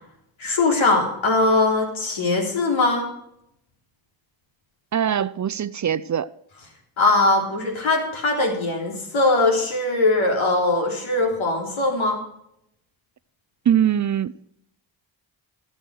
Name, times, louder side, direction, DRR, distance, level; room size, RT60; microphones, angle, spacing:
voice 1, 0.4-3.1 7.0-12.2, left 2 dB, 75° left, 3.5 m, -21 dB
voice 2, 4.9-6.3 13.7-14.5, right 9 dB, 40° right, 0.5 m, -22 dB
17.0 x 6.4 x 6.3 m
cardioid pair, 65°, 48 cm